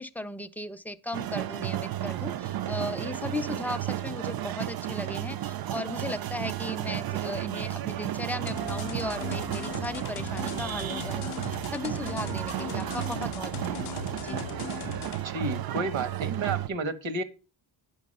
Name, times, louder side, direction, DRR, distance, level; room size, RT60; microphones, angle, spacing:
voice 1, 0.0-14.4, left 1 dB, 5° left, 0.4 m, -36 dB
sound 1, 1.1-16.7, right 13 dB, 50° right, 0.5 m, -33 dB
sound 2, 8.5-15.2, left 14 dB, 85° left, 0.5 m, -39 dB
voice 2, 15.2-17.2, right 3 dB, 65° right, 1.4 m, -31 dB
9.4 x 5.9 x 5.4 m
cardioid pair, 115°, 48 cm